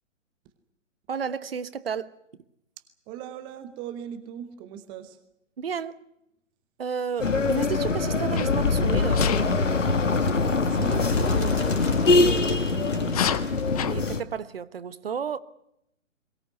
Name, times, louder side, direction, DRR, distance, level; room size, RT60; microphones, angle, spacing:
voice 1, 1.1-2.1 5.6-6.0 6.8-9.5 13.9-15.4, right 6 dB, 50° right, 1.3 m, -32 dB
voice 2, 3.1-5.2 10.7-11.7 12.2-13.3, right 9 dB, 10° right, 1.0 m, -39 dB
sound 1, 7.2-14.2, left 3 dB, 70° left, 1.9 m, -23 dB
Sneeze, 8.4-8.6 9.1-9.5 12.0-12.2 13.0-13.9, left 9 dB, 30° left, 1.2 m, -28 dB
Bird, 8.7-14.1, left 4 dB, 50° left, 4.3 m, -42 dB
22.5 x 17.5 x 9.5 m
figure-of-eight pair, 135°, 39 cm